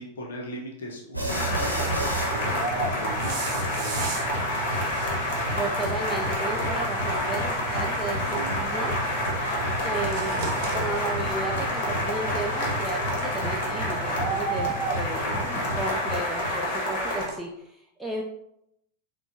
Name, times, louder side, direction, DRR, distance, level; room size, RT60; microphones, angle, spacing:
voice 1, 0.0-4.8 15.2-15.6, equal, 65° left, 0 dB, 0.8 m, -39 dB
sound 1, 1.1-16.5, right 1 dB, 90° right, 0.9 m, -33 dB
sound 2, 1.3-17.3, equal, 45° left, 1.4 m, -28 dB
sound 3, 1.4-17.4, right 5 dB, 45° right, 0.9 m, -42 dB
voice 2, 5.6-8.9 9.8-10.4 10.7-15.2 15.7-18.2, right 2 dB, 5° right, -2 dB, 0.5 m, -33 dB
6.8 x 2.3 x 2.7 m, 0.79 s
figure-of-eight pair, 90°, 0 cm